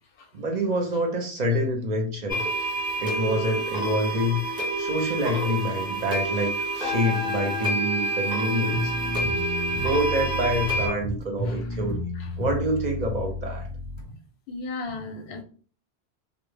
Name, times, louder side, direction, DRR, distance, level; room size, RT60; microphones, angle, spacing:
voice 1, 0.3-2.4 3.0-4.4 4.8-8.9 9.7-12.0 12.4-13.7, equal, 55° right, 2 dB, 0.6 m, -27 dB
sound 1, 2.3-10.9, right 1 dB, 5° right, 0.8 m, -28 dB
sound 2, 8.7-14.0, left 1 dB, 45° left, 0.4 m, -32 dB
voice 2, 14.5-15.4, left 3 dB, 90° left, 4 dB, 0.8 m, -35 dB
2.0 x 2.0 x 3.2 m, 0.40 s
omnidirectional pair, 1.1 m